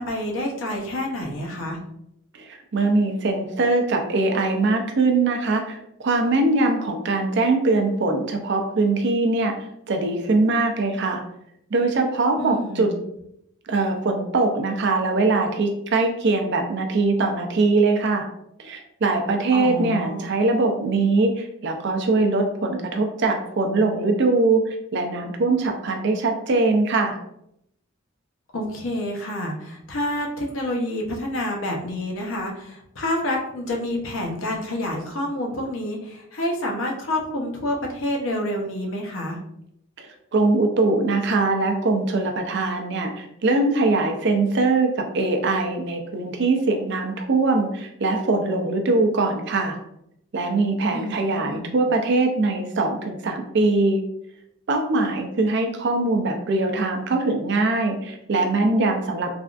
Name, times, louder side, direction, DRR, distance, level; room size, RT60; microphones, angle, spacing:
voice 1, 0.0-1.8 12.4-13.1 19.5-20.3 28.5-39.4 50.9-51.7, left 1 dB, 65° left, 0 dB, 0.7 m, -28 dB
voice 2, 2.3-9.5 9.9-11.2 11.7-12.9 13.7-18.3 18.6-27.2 40.0-40.1 40.3-49.8 50.3-54.0 54.7-59.3, right 3 dB, 55° right, 4 dB, 0.4 m, -22 dB
3.3 x 2.3 x 2.4 m, 0.77 s
head